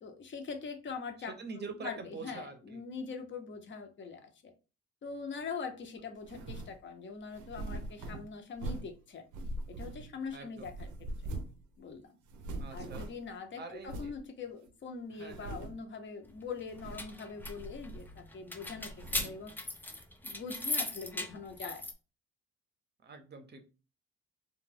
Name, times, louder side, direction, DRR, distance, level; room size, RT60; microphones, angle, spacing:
voice 1, 0.0-4.5 5.0-9.3 9.8-10.9 11.8-12.1 12.7-18.9 19.2-19.6 20.2-21.8, left 5 dB, 40° left, 6 dB, 0.6 m, -43 dB
voice 2, 1.4-2.8 10.3-10.7 12.6-13.1 13.6-14.1 15.1-15.5 23.0-23.7, right 4 dB, 35° right, 6 dB, 0.6 m, -45 dB
sound 1, 6.2-6.8 7.3-9.0 9.3-10.3 10.6-11.6 11.9-12.0 12.3-13.3 13.8-14.2 14.7-14.8 15.2-15.9 16.6-17.1 17.4-18.3 18.6-19.5, right 2 dB, 75° right, 0.5 m, -42 dB
sound 2, 16.7-21.9, left 2 dB, 5° left, 0.3 m, -38 dB
2.3 x 2.2 x 3.2 m, 0.33 s
cardioid pair, 90°, 30 cm